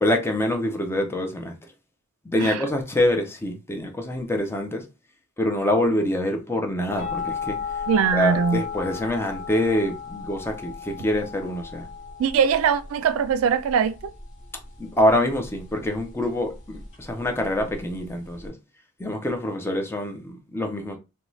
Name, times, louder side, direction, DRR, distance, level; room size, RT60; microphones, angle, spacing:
voice 1, 0.0-1.5 2.3-4.8 5.4-7.6 8.1-11.9 14.8-18.5 19.0-21.0, left 1 dB, 10° left, 0.4 m, -25 dB
sound 1, 7.0-18.5, left 6 dB, 35° left, 1.0 m, -35 dB
voice 2, 7.9-8.6 12.2-13.9, right 7 dB, 65° right, 0.3 m, -21 dB
2.6 x 2.2 x 3.0 m
head